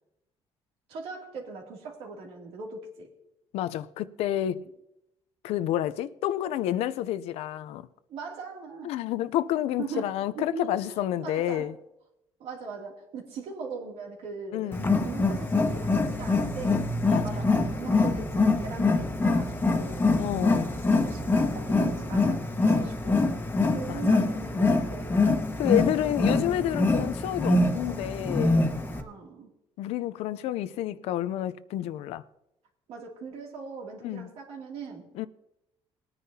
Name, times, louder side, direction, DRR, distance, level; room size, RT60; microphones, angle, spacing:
voice 1, 0.9-3.1 8.1-9.0 9.8-11.7 12.4-20.1 20.6-23.3 23.7-26.0 28.9-29.5 32.9-35.1, right 5 dB, 80° right, 2.6 m, -40 dB
voice 2, 3.5-4.7 5.4-7.9 8.8-11.7 14.5-14.9 17.1-17.4 20.2-20.7 23.9-24.0 25.6-28.6 29.8-32.2 34.0-34.3 35.2-35.3, left 12 dB, 90° left, 0.5 m, -29 dB
Wild animals, 14.7-29.0, left 3 dB, 20° left, 1.3 m, -25 dB
20.5 x 9.8 x 2.8 m
cardioid pair, 125°, 10 cm